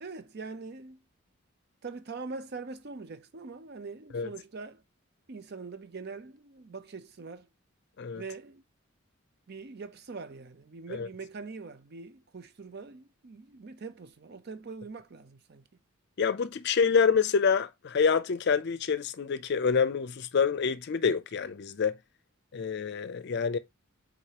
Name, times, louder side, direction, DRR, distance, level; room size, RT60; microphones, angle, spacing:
voice 1, 0.0-1.0 1.8-4.8 5.3-7.5 8.1-8.6 9.5-15.6, right 4 dB, 50° right, 0.5 m, -43 dB
voice 2, 16.2-22.0 22.5-23.6, left 6 dB, 50° left, 0.4 m, -27 dB
4.8 x 3.9 x 2.9 m
head